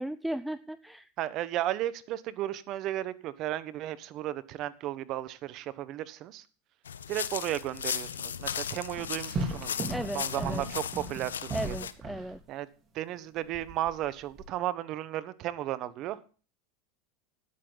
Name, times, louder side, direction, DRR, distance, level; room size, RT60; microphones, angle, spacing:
voice 1, 0.0-1.1 9.9-10.6 11.5-12.4, right 1 dB, 5° right, 15 dB, 0.5 m, -36 dB
voice 2, 1.2-6.4 7.1-11.8 12.5-12.7 12.9-16.3, right 13 dB, 50° right, 16 dB, 1.1 m, -34 dB
sound 1, 6.9-11.9, left 8 dB, 90° left, 0.8 m, -36 dB
sound 2, 9.0-12.4 13.5-14.5, right 2 dB, 35° right, 3.9 m, -35 dB
14.0 x 10.0 x 4.0 m, 0.37 s
hypercardioid pair, 100°, 0 cm